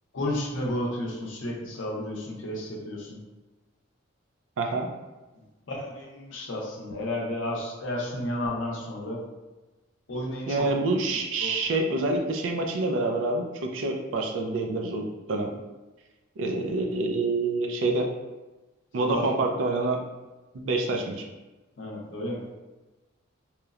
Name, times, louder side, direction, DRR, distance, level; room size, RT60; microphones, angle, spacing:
voice 1, 0.1-3.2 5.7-9.2 10.1-10.7 11.4-11.5 19.1-19.3 21.8-22.4, left 1 dB, 70° left, -2 dB, 0.6 m, -32 dB
voice 2, 4.6-4.9 10.5-15.5 16.4-18.1 18.9-20.0 20.5-21.2, right 2 dB, 75° right, 2 dB, 0.4 m, -27 dB
2.9 x 2.0 x 2.3 m, 1.1 s
head